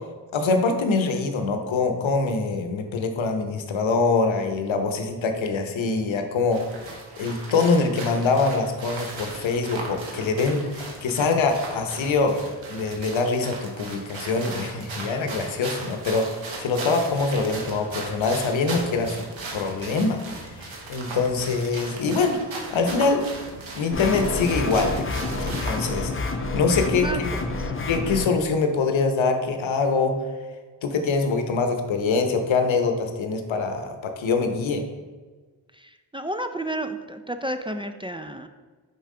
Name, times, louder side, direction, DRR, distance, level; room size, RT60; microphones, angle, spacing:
voice 1, 0.3-6.6 7.2-19.2 19.5-20.2 20.6-22.4 22.7-23.2 23.7-27.3 27.9-30.2 30.8-34.8, left 4 dB, 85° left, 6 dB, 0.8 m, -24 dB
sound 1, 6.5-26.0, right 2 dB, 85° right, 1.3 m, -37 dB
sound 2, 23.9-28.3, left 3 dB, 30° left, 0.8 m, -28 dB
voice 2, 26.9-27.7 35.7-38.5, right 1 dB, 10° right, 7 dB, 0.4 m, -32 dB
5.7 x 5.5 x 3.7 m, 1.4 s
cardioid pair, 45°, 45 cm